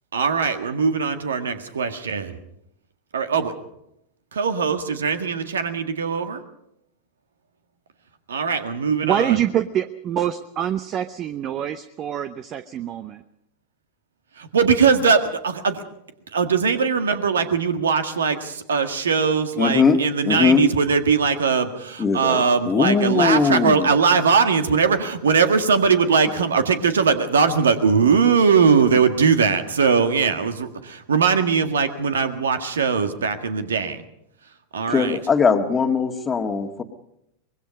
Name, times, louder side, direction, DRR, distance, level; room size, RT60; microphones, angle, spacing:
voice 1, 0.1-2.4 3.1-3.5 4.3-6.4 8.3-9.4 14.4-15.8 16.3-34.0 34.7-35.2, right 5 dB, 65° right, 9 dB, 1.8 m, -20 dB
voice 2, 9.0-13.2, right 10 dB, 30° right, 13 dB, 0.8 m, -25 dB
voice 3, 19.6-20.0 20.2-20.6 22.0-23.9 34.9-36.8, left 5 dB, 20° left, 6 dB, 1.7 m, -20 dB
24.0 x 21.0 x 5.3 m, 0.80 s
figure-of-eight pair, 90°, 0 cm